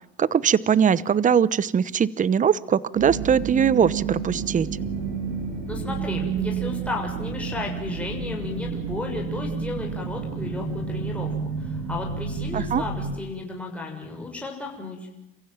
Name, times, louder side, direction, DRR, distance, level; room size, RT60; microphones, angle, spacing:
voice 1, 0.2-4.7 12.5-12.8, right 7 dB, 25° right, 20 dB, 0.9 m, -21 dB
sound 1, 2.9-13.2, right 6 dB, 60° right, 7.4 m, -30 dB
Bass guitar, 4.8-9.2, left 5 dB, 45° left, 6.4 m, -43 dB
voice 2, 5.7-15.1, left 3 dB, 5° left, -1 dB, 6.7 m, -34 dB
29.5 x 15.5 x 9.1 m, 0.90 s
supercardioid pair, 105°, 30 cm